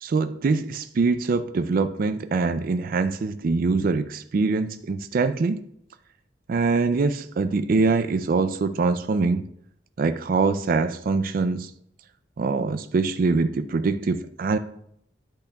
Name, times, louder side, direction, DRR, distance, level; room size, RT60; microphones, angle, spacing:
voice 1, 0.0-5.6 6.5-9.4 10.0-11.7 12.4-14.6, right 4 dB, 50° right, 11 dB, 0.4 m, -23 dB
10.5 x 5.8 x 2.3 m, 0.71 s
head